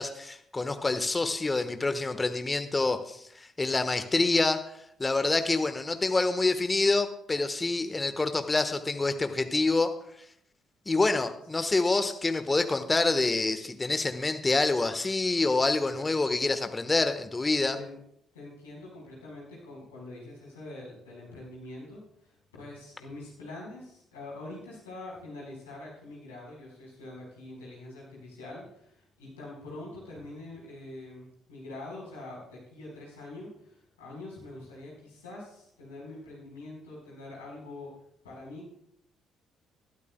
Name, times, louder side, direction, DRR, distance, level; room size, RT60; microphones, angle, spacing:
voice 1, 0.0-4.6 5.0-9.9 10.9-17.8, left 3 dB, 20° left, 9 dB, 1.2 m, -27 dB
voice 2, 18.3-37.9 38.2-38.7, left 2 dB, 80° left, -4 dB, 4.3 m, -44 dB
20.5 x 12.5 x 2.2 m, 0.74 s
figure-of-eight pair, 45°, 0 cm